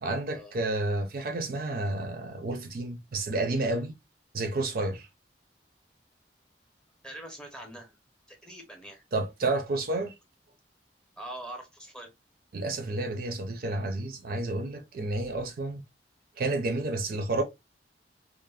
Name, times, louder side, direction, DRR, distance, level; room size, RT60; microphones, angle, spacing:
voice 1, 0.0-3.9 4.3-5.1 9.1-10.1 12.5-15.8 16.4-17.4, right 2 dB, 55° right, 0.5 m, -30 dB
voice 2, 7.0-8.0 8.3-9.0 11.2-12.1, right 1 dB, 5° left, 0.7 m, -43 dB
3.1 x 2.0 x 2.3 m
head